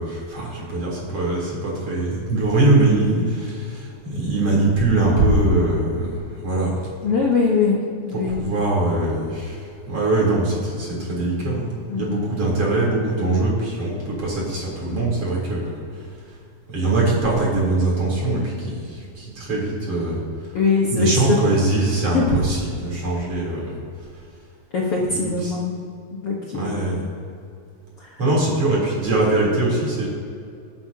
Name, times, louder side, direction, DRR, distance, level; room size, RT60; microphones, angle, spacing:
voice 1, 0.0-6.2 6.4-6.8 8.4-9.6 9.9-11.7 12.0-15.8 16.7-20.2 20.9-23.6 25.1-25.5 26.5-27.1 28.2-30.1, right 2 dB, 35° right, -5 dB, 4.3 m, -22 dB
voice 2, 7.0-7.8 8.0-8.5 11.9-12.2 20.5-21.6 22.1-22.4 24.7-25.7 26.1-26.8 28.0-28.2, left 4 dB, 75° left, -3 dB, 1.3 m, -22 dB
27.5 x 9.7 x 2.9 m, 2.4 s
omnidirectional pair, 4.7 m